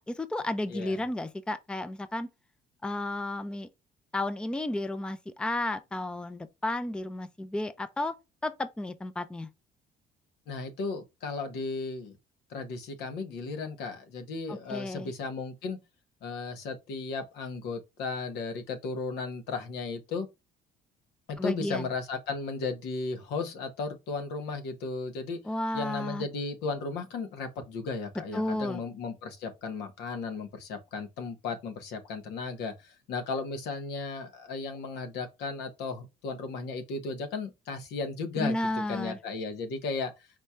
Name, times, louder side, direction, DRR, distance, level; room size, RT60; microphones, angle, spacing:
voice 1, 0.0-2.3 2.8-3.7 4.1-8.1 8.4-9.5 14.5-15.1 21.4-21.9 25.5-26.3 28.3-28.8 38.4-39.2, left 1 dB, 5° left, 0.4 m, -32 dB
voice 2, 0.7-1.0 10.5-12.2 12.5-15.8 16.2-20.3 21.3-25.4 25.7-38.6 38.9-40.3, left 4 dB, 85° left, 1.2 m, -35 dB
4.3 x 4.3 x 2.3 m
cardioid pair, 110°, 17 cm